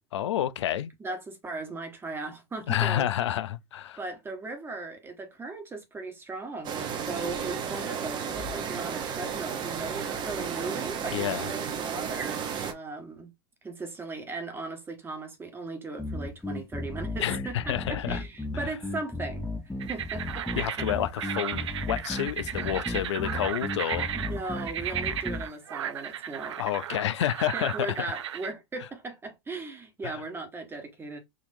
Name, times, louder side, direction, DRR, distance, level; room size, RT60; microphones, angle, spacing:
voice 1, 0.1-0.9 2.7-4.0 11.1-11.5 17.2-18.2 18.5-18.7 20.6-24.1 26.6-28.1 30.0-30.1, left 11 dB, 75° left, 0.5 m, -29 dB
voice 2, 1.0-3.1 4.0-13.3 13.6-19.4 19.9-20.9 24.1-26.6 27.5-31.2, right 3 dB, 15° right, 1.2 m, -38 dB
sound 1, 6.6-12.7, right 7 dB, 30° right, 0.8 m, -33 dB
sound 2, 16.0-25.5, left 2 dB, 5° left, 0.6 m, -35 dB
sound 3, 19.8-28.5, right 10 dB, 80° right, 0.5 m, -35 dB
3.9 x 2.9 x 2.6 m
hypercardioid pair, 110°, 15 cm